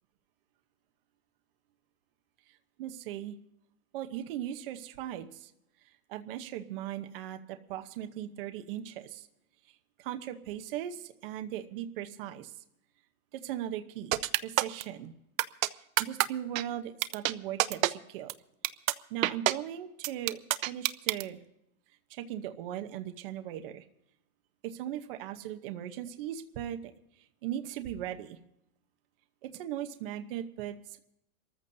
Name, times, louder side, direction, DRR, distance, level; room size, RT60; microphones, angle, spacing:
voice 1, 2.8-3.3 3.9-5.5 6.1-9.3 10.0-12.5 13.3-15.1 15.7-18.3 19.1-20.4 20.6-21.4 22.1-23.8 24.6-26.9 27.4-28.4 29.4-31.0, right 11 dB, 40° right, 7 dB, 0.9 m, -38 dB
sound 1, 14.1-14.8 15.4-15.7 16.0-16.3 16.6-16.7 17.0-17.3 17.6-17.9 18.3-18.4 18.6-18.9 19.2-19.5 20.0-21.2, right 16 dB, 65° right, 0.7 m, -26 dB
27.5 x 14.0 x 2.7 m, 0.81 s
supercardioid pair, 170°, 42 cm